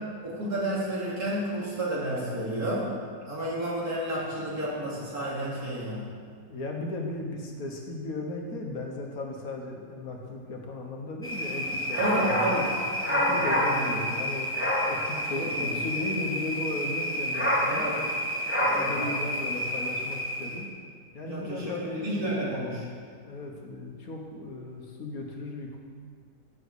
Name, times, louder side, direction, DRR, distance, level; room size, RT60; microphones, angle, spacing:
voice 1, 0.2-2.9 3.2-6.1 12.0-12.8 13.1-13.4 13.7-14.1 15.4-15.7 17.7-18.0 18.7-19.1 21.2-22.9, right 1 dB, 60° right, -6 dB, 3.0 m, -31 dB
voice 2, 6.5-12.7 13.2-14.5 14.9-17.9 18.6-20.7 21.1-22.4 23.2-25.8, left 2 dB, 60° left, 1 dB, 1.5 m, -36 dB
sound 1, 11.2-20.7, equal, 10° left, 1.2 m, -28 dB
7.7 x 7.2 x 8.0 m, 2.1 s
omnidirectional pair, 1.8 m